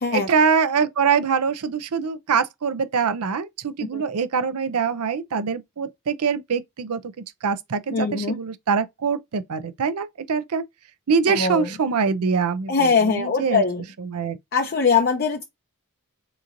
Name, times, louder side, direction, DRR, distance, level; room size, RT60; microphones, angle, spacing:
voice 1, 0.1-10.6 11.1-13.6 14.0-14.4, right 5 dB, 85° right, 0.5 m, -24 dB
voice 2, 7.9-8.4 11.3-11.7 12.7-13.8 14.5-15.4, left 5 dB, 45° left, 0.5 m, -21 dB
3.8 x 3.0 x 2.5 m
head